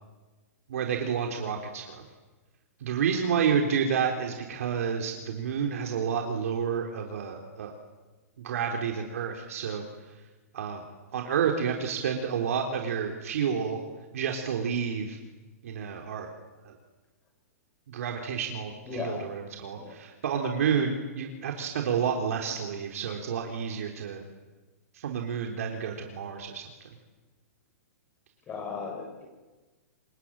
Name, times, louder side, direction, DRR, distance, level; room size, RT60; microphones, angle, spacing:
voice 1, 0.7-2.0 2.8-7.7 8.4-9.8 10.5-10.8 11.1-13.8 14.1-15.2 15.6-16.3 16.6-16.7 17.9-24.2 24.9-26.6, right 7 dB, 65° right, 2 dB, 3.9 m, -30 dB
voice 2, 18.8-19.2 19.8-19.9 28.5-29.3, left 5 dB, 20° left, 3 dB, 5.7 m, -36 dB
27.0 x 22.5 x 8.9 m, 1.2 s
hypercardioid pair, 150°, 8 cm